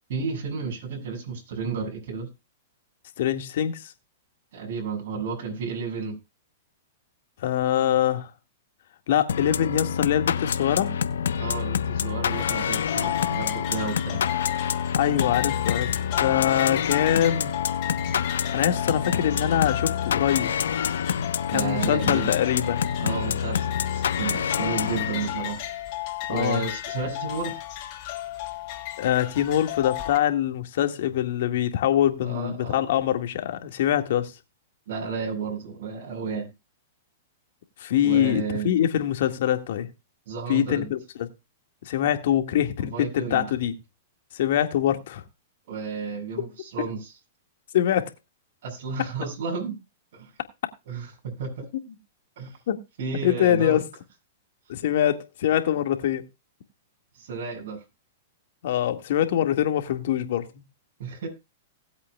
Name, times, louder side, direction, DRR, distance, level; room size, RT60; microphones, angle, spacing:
voice 1, 0.1-2.3 4.5-6.1 11.4-14.2 21.5-22.3 23.0-25.6 26.3-27.6 32.2-32.8 34.9-36.5 38.0-38.7 40.3-40.9 42.8-43.5 45.7-47.1 48.6-49.8 50.1-50.3 50.9-51.6 52.4-52.6 53.0-53.8 57.2-57.8 61.0-61.3, right 5 dB, 60° right, 6.8 m, -32 dB
voice 2, 3.2-3.8 7.4-8.3 9.1-11.0 15.0-15.9 16.2-17.6 18.5-20.5 21.5-22.8 26.3-26.7 29.0-34.3 37.8-39.9 40.5-41.0 41.8-43.7 44.3-45.2 47.7-48.1 52.7-52.8 53.2-53.8 54.7-56.2 58.6-60.5, left 11 dB, 65° left, 1.9 m, -24 dB
sound 1, 9.3-25.6, left 7 dB, 80° left, 1.0 m, -27 dB
sound 2, 12.3-30.2, left 15 dB, 50° left, 2.8 m, -34 dB
19.0 x 8.3 x 2.4 m
hypercardioid pair, 120°, 0 cm